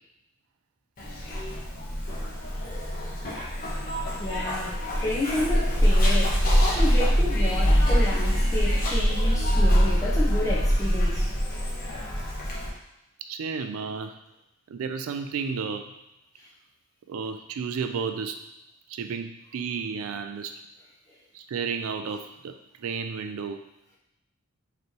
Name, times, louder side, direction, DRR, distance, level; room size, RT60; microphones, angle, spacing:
Zipper (clothing), 1.0-12.7, equal, 40° left, 1.1 m, -24 dB
voice 1, 4.2-6.4 6.7-11.3, left 1 dB, 15° left, -7 dB, 1.0 m, -31 dB
voice 2, 13.3-14.1 14.7-15.9 17.1-18.4 18.9-20.6 21.3-23.6, right 5 dB, 75° right, 7 dB, 0.4 m, -32 dB
5.2 x 3.1 x 2.9 m, 0.90 s
head